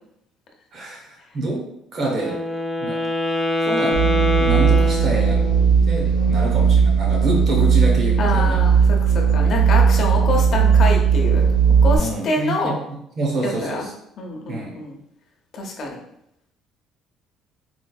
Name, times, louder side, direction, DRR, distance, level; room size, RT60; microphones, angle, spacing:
voice 1, 0.7-1.7 1.9-2.4 2.8-3.0 3.6-5.5 5.8-8.6 9.3-9.6 12.0-13.9 14.5-14.7, right 2 dB, 40° right, 0 dB, 0.9 m, -27 dB
Wind instrument woodwind instrument, 2.1-5.7, left 1 dB, 5° right, 0.4 m, -24 dB
sound 1, 3.9-12.0, right 6 dB, 75° right, 0.7 m, -17 dB
voice 2, 8.2-11.5 11.8-12.8 13.4-13.9 14.2-14.9 15.5-16.0, left 2 dB, 45° left, 1 dB, 0.7 m, -26 dB
4.3 x 2.5 x 2.3 m, 0.76 s
cardioid pair, 150°, 0 cm